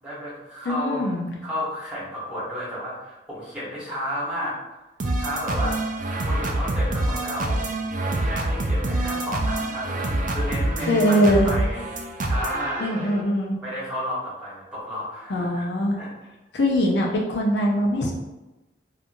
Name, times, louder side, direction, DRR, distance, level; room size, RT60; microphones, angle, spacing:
voice 1, 0.0-1.1 1.4-4.8 5.2-5.8 6.0-11.8 12.2-13.1 13.6-15.7 16.0-16.1, equal, 5° right, -8 dB, 1.2 m, -32 dB
voice 2, 0.6-1.3 10.9-11.5 12.8-13.6 15.3-16.0 16.5-18.1, equal, 80° left, 0 dB, 0.6 m, -22 dB
sound 1, 5.0-13.2, right 1 dB, 45° right, 0.4 m, -26 dB
2.9 x 2.4 x 2.5 m, 1.0 s
head